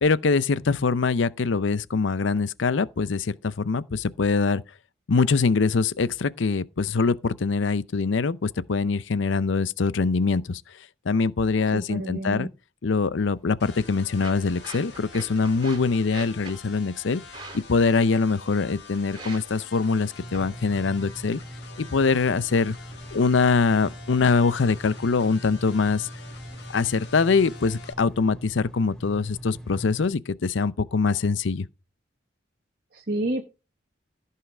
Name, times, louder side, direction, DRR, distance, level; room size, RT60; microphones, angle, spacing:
voice 1, 0.0-4.6 5.1-10.6 11.1-12.5 12.8-17.2 17.7-21.4 21.8-22.8 23.1-26.1 26.7-31.7, left 4 dB, 75° left, 0.6 m, -23 dB
voice 2, 11.7-12.5 32.9-33.4, right 1 dB, 50° right, 1.1 m, -29 dB
sound 1, 13.2-23.2, right 3 dB, 25° right, 3.3 m, -47 dB
sound 2, 13.6-27.9, left 4 dB, 55° left, 2.7 m, -46 dB
sound 3, 20.2-30.1, equal, 5° left, 2.3 m, -41 dB
14.5 x 5.7 x 4.9 m
head